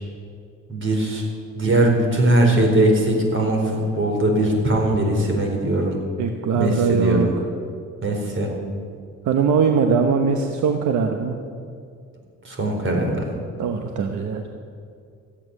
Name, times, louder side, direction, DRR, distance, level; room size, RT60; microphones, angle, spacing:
voice 1, 0.7-1.3 1.6-6.0 6.5-7.3 8.0-8.5 12.4-13.3, right 1 dB, 40° right, 1 dB, 4.2 m, -20 dB
voice 2, 6.2-7.3 9.2-11.4 13.6-14.6, right 5 dB, 75° right, 5 dB, 1.2 m, -21 dB
14.5 x 8.9 x 9.9 m, 2.3 s
cardioid pair, 90°, 30 cm